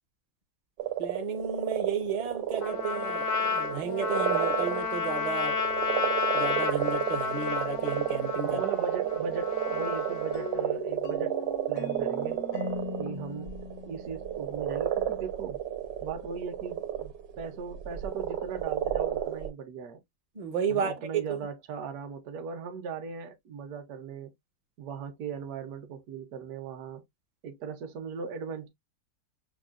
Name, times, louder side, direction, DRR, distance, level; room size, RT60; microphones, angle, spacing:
sound 1, 0.8-19.5, right 11 dB, 80° right, 1.6 m, -31 dB
voice 1, 1.0-5.6 6.3-8.6 20.4-20.9 21.3-21.4, right 5 dB, 45° right, 0.5 m, -33 dB
Trumpet, 2.6-10.7, left 5 dB, 90° left, 1.5 m, -32 dB
voice 2, 8.4-11.3 11.7-12.5 13.0-13.5 13.8-15.6 16.0-20.0 20.7-24.3 24.8-27.0 27.4-28.7, right 6 dB, 65° right, 1.2 m, -38 dB
sound 2, 10.3-15.0, left 5 dB, 75° left, 0.7 m, -40 dB
6.3 x 2.3 x 2.4 m
omnidirectional pair, 1.9 m